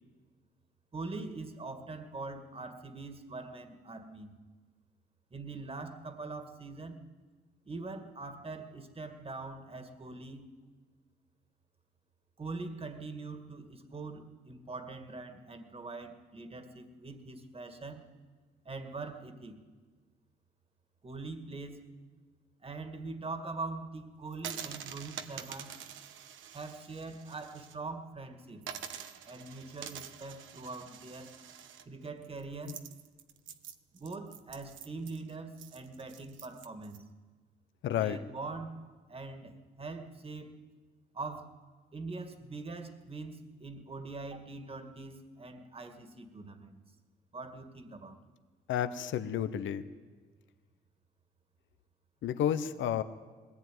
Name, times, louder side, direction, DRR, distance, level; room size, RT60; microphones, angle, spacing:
voice 1, 0.9-4.3 5.3-7.0 7.7-10.5 12.4-18.0 18.6-19.6 21.0-21.9 22.6-25.8 26.5-28.7 29.2-31.3 31.9-32.9 33.9-37.0 37.9-38.8 39.1-40.6 41.1-41.5 41.9-46.8 47.3-48.2, right 3 dB, 30° right, 7 dB, 2.1 m, -43 dB
sound 1, 24.3-27.7 28.1-28.2 28.6-37.0, right 9 dB, 80° right, 1.1 m, -46 dB
voice 2, 37.8-38.2 48.7-49.9 52.2-53.0, left 10 dB, 75° left, 11 dB, 0.9 m, -31 dB
20.0 x 15.0 x 9.4 m, 1.4 s
cardioid pair, 90°, 20 cm